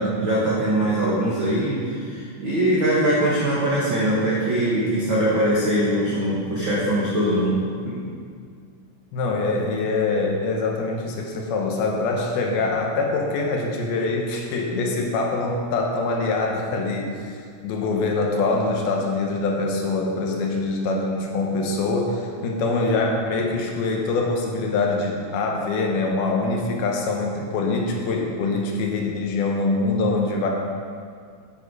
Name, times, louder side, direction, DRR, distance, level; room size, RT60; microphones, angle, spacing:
voice 1, 0.0-7.6 7.8-8.0, right 1 dB, 80° right, -7 dB, 1.0 m, -22 dB
voice 2, 9.1-17.4 17.6-30.5, left 3 dB, 75° left, 0 dB, 2.7 m, -24 dB
9.6 x 9.2 x 4.8 m, 2.1 s
omnidirectional pair, 4.9 m